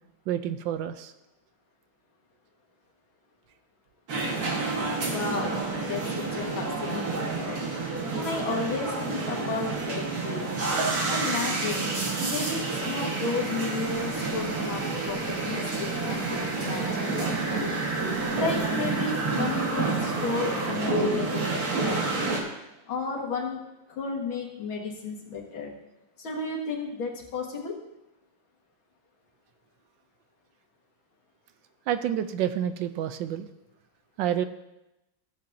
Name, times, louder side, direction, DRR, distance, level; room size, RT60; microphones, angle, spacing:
voice 1, 0.3-1.1 17.3-17.4 31.9-33.5 34.2-34.4, right 10 dB, 75° right, 10 dB, 1.2 m, -29 dB
sound 1, 4.1-22.4, right 3 dB, 50° right, 1.9 m, -29 dB
voice 2, 5.1-7.6 8.1-10.5 11.1-12.0 12.2-17.8 18.3-22.3 22.9-23.6 23.9-25.7 26.2-27.8, left 4 dB, 80° left, -1 dB, 2.4 m, -33 dB
15.0 x 8.2 x 2.7 m, 0.93 s
omnidirectional pair, 2.1 m